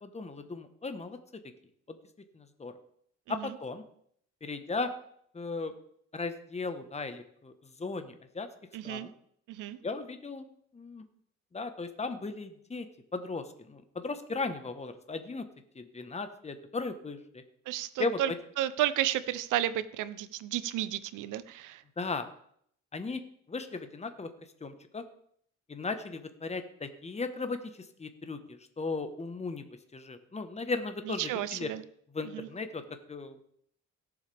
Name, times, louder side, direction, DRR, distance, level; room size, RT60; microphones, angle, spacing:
voice 1, 0.0-1.2 1.9-2.0 2.3-2.7 3.3-3.8 4.4-4.9 5.3-5.7 6.1-8.5 8.8-9.1 9.8-10.5 10.7-11.0 11.5-12.9 13.1-15.4 15.7-17.4 18.0-18.2 22.0-22.3 22.9-23.2 23.5-24.3 24.6-25.0 25.7-29.6 29.9-31.7 32.1-32.8 33.1-33.4, left 3 dB, 20° left, 8 dB, 1.2 m, -36 dB
voice 2, 8.7-9.1 9.5-9.8 17.7-18.3 18.6-21.8 31.1-31.8 32.3-32.5, right 12 dB, 90° right, 15 dB, 0.7 m, -32 dB
17.5 x 7.4 x 3.5 m, 0.67 s
cardioid pair, 90°, 30 cm